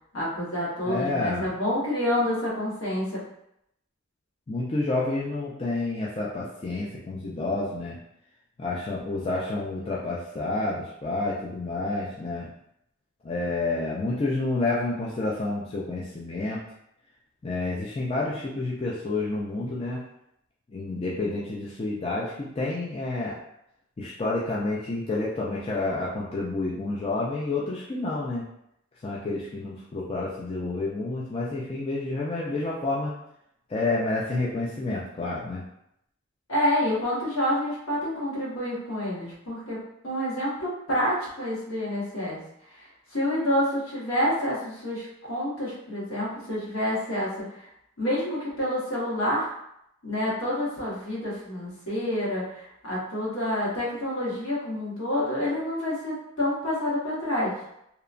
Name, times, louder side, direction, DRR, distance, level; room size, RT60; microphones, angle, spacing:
voice 1, 0.1-3.2 36.5-42.4 42.7-47.7 48.0-49.5 50.0-57.5, left 1 dB, 75° left, -7 dB, 1.2 m, -28 dB
voice 2, 0.8-1.5 4.5-8.0 8.6-12.5 13.2-16.6 17.4-20.0 20.7-23.4 24.0-28.5 29.0-33.1 33.7-35.6, left 2 dB, 25° left, -5 dB, 0.3 m, -29 dB
2.8 x 2.1 x 2.5 m, 0.78 s
head